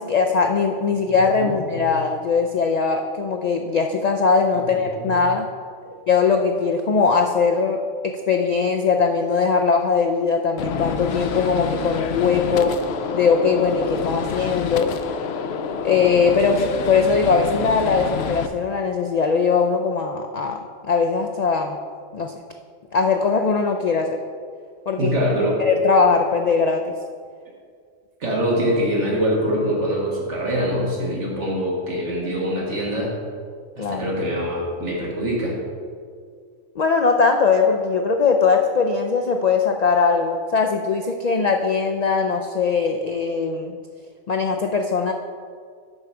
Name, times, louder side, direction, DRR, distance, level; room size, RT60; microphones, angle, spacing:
voice 1, 0.0-5.5 6.1-12.7 13.1-14.9 15.8-20.6 20.9-21.8 22.1-22.4 22.9-24.2 24.9-25.1 25.6-26.8 33.8-34.1 36.8-43.8 44.3-45.1, left 5 dB, 90° left, 3 dB, 0.3 m, -20 dB
voice 2, 1.1-1.9 4.5-5.1 5.8-5.9 25.0-25.6 28.2-33.1 33.8-35.6, equal, 65° right, -3 dB, 1.8 m, -24 dB
Gunshot gunfire, 10.6-18.5, left 6 dB, 65° left, 0.8 m, -28 dB
6.9 x 4.9 x 6.8 m, 2.1 s
omnidirectional pair, 1.3 m